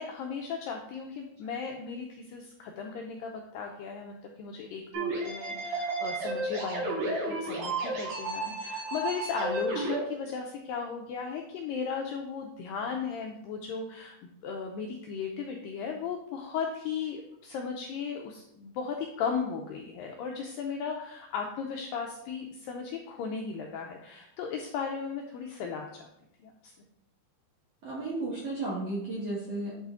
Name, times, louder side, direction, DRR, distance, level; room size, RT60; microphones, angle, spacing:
voice 1, 0.0-26.0 26.4-26.7, left 6 dB, 85° left, 2 dB, 2.0 m, -36 dB
sound 1, 4.9-10.0, right 2 dB, 85° right, 4.7 m, -32 dB
voice 2, 27.8-29.8, right 2 dB, 65° right, -6 dB, 1.6 m, -33 dB
9.4 x 4.0 x 3.7 m, 0.79 s
omnidirectional pair, 4.6 m